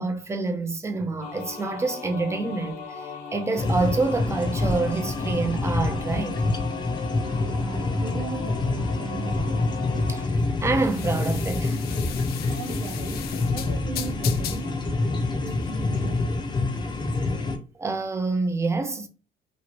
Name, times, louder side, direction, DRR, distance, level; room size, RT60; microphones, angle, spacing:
voice 1, 0.0-6.4 10.1-10.2 10.6-11.8 17.8-19.1, right 3 dB, 15° right, 0.5 m, -27 dB
sound 1, 1.2-10.3, left 5 dB, 85° left, 0.9 m, -38 dB
sound 2, 3.6-17.6, left 2 dB, 25° left, 0.6 m, -27 dB
voice 2, 7.1-9.6 12.5-14.8 15.4-16.2, right 5 dB, 75° right, 0.8 m, -38 dB
sound 3, 9.1-17.1, left 11 dB, 65° left, 0.4 m, -39 dB
3.1 x 2.4 x 2.8 m
cardioid pair, 110°, 17 cm